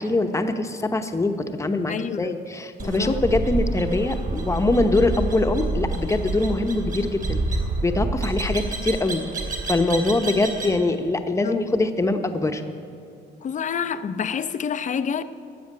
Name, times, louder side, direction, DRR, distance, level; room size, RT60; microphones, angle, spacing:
voice 1, 0.0-9.2 9.7-12.6, left 2 dB, 15° left, 0.9 m, -23 dB
voice 2, 1.9-2.4 2.8-3.2 11.4-11.6 13.4-15.2, left 7 dB, 40° left, 0.6 m, -28 dB
sound 1, 2.8-10.8, right 2 dB, 45° right, 2.8 m, -28 dB
13.0 x 7.8 x 9.3 m
cardioid pair, 120°, 19 cm